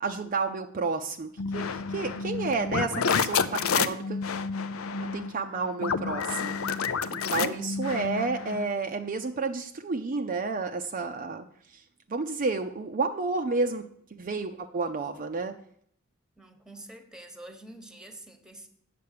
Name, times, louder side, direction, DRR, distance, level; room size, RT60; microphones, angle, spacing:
voice 1, 0.0-4.2 5.0-11.5 11.7-11.8 12.1-13.9 14.1-15.6, right 4 dB, 40° right, 0.5 m, -31 dB
sound 1, 1.4-8.7, left 5 dB, 85° left, 0.6 m, -30 dB
voice 2, 16.4-18.7, right 1 dB, 5° right, 1.1 m, -46 dB
8.4 x 6.7 x 6.6 m
head